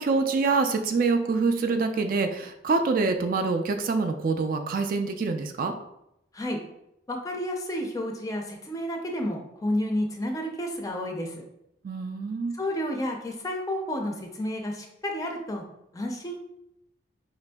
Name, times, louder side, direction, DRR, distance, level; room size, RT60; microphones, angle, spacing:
voice 1, 0.0-5.7 11.8-12.6, right 4 dB, 50° right, 6 dB, 0.3 m, -25 dB
voice 2, 7.1-11.3 12.6-15.6 15.9-16.4, left 1 dB, 20° left, 2 dB, 0.4 m, -31 dB
4.8 x 2.5 x 2.2 m, 0.81 s
head